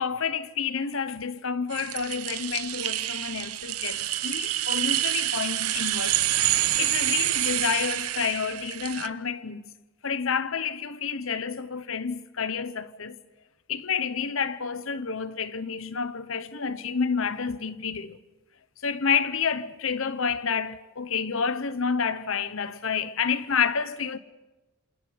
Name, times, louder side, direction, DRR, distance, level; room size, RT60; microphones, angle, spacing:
voice 1, 0.0-6.2 6.8-9.7 10.0-13.2 13.7-18.2 18.8-24.2, left 6 dB, 60° left, 0.9 m, -29 dB
sound 1, 1.7-9.1, right 14 dB, 85° right, 0.8 m, -27 dB
28.0 x 27.5 x 5.2 m
head